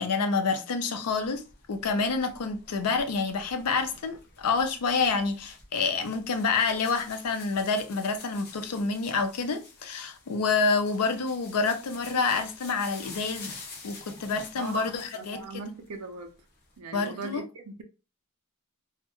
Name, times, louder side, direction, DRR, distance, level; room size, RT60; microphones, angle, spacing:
voice 1, 0.0-1.4 1.7-13.5 13.8-15.6 16.9-17.4, left 4 dB, 90° left, 0.5 m, -28 dB
sound 1, 1.2-15.5 15.8-16.8, left 3 dB, 45° left, 0.7 m, -48 dB
voice 2, 14.6-16.3 16.8-17.8, right 3 dB, 80° right, 0.4 m, -39 dB
2.2 x 2.1 x 2.9 m
head